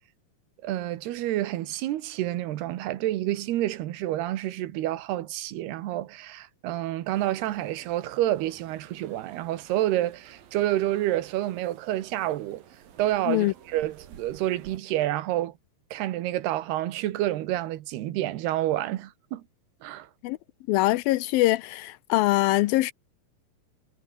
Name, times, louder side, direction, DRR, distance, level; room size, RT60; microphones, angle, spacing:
voice 1, 0.6-12.6 13.0-15.5 15.9-19.4 19.8-20.1, right 14 dB, 90° right, 3.3 m, -29 dB
sound 1, 7.1-14.8, right 9 dB, 65° right, 4.2 m, -52 dB
voice 2, 20.7-22.9, left 17 dB, 80° left, 2.3 m, -23 dB
omnidirectional pair, 4.5 m